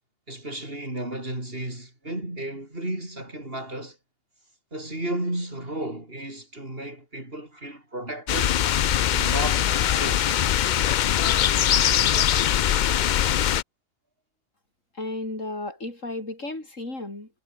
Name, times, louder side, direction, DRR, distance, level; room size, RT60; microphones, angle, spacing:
voice 1, 0.3-4.0 4.7-8.7 9.1-10.4, right 1 dB, 45° right, 7.0 m, -33 dB
sound 1, 8.3-13.6, left 10 dB, 85° left, 0.4 m, -22 dB
voice 2, 14.9-17.3, left 2 dB, 70° left, 6.4 m, -33 dB
omnidirectional pair, 1.4 m